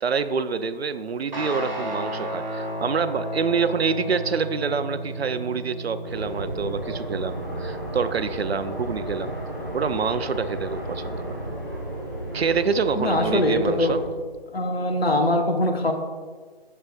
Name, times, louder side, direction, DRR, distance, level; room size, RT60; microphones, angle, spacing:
voice 1, 0.0-9.3 9.7-11.4 12.3-14.0, right 5 dB, 80° right, 12 dB, 0.5 m, -26 dB
Guitar, 1.3-10.1, right 1 dB, 50° right, 1.7 m, -34 dB
sound 1, 6.0-14.1, right 1 dB, 20° right, 0.6 m, -33 dB
voice 2, 12.9-14.0 14.5-15.9, left 1 dB, 75° left, 4 dB, 1.1 m, -22 dB
8.4 x 6.6 x 2.4 m, 1.5 s
figure-of-eight pair, 170°, 31 cm